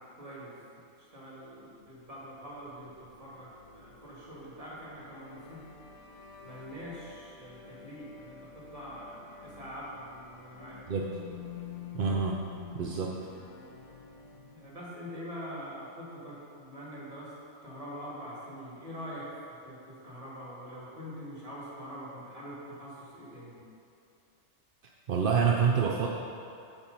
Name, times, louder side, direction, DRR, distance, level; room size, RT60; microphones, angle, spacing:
voice 1, 0.0-5.6 6.4-10.8 11.2-11.3 14.5-17.3 17.6-19.3 19.6-23.7, equal, 25° right, -6 dB, 1.9 m, -44 dB
Magic Forest, 1.9-14.9, left 7 dB, 90° left, 1.1 m, -49 dB
voice 2, 11.9-12.4 12.7-13.2 25.1-26.1, right 6 dB, 55° right, -1 dB, 0.6 m, -27 dB
9.7 x 4.4 x 5.4 m, 2.6 s
omnidirectional pair, 1.4 m